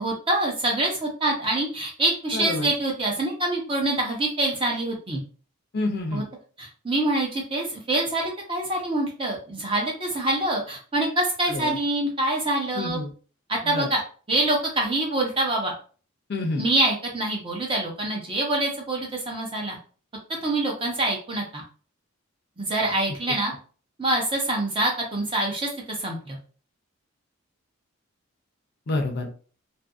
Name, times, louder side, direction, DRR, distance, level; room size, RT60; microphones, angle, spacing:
voice 1, 0.0-5.2 6.1-6.2 6.6-13.0 13.5-14.0 14.3-15.7 16.6-19.8 20.4-21.6 22.6-23.5 24.0-25.7 26.0-26.4, right 2 dB, 25° right, -1 dB, 0.7 m, -25 dB
voice 2, 2.3-2.7 5.7-6.3 11.5-11.8 12.7-13.1 13.6-13.9 16.3-16.7 28.9-29.3, left 2 dB, 45° left, 3 dB, 0.5 m, -28 dB
2.6 x 2.5 x 2.4 m, 0.39 s
head